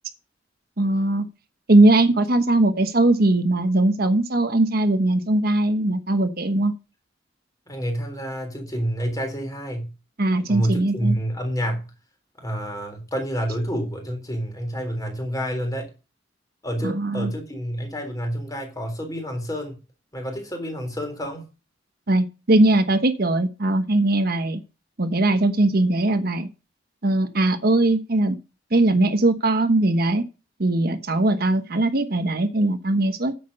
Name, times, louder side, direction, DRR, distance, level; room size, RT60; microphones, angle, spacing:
voice 1, 0.8-1.3 1.7-6.7 10.2-11.1 16.8-17.3 22.1-24.6 25.0-26.5 27.0-28.3 28.7-30.2 30.6-33.3, right 2 dB, 55° right, 8 dB, 1.2 m, -20 dB
voice 2, 7.7-9.9 10.5-11.9 12.4-15.9 16.6-19.8 20.1-21.4, equal, 20° left, 4 dB, 3.6 m, -28 dB
9.6 x 7.7 x 5.3 m, 0.30 s
head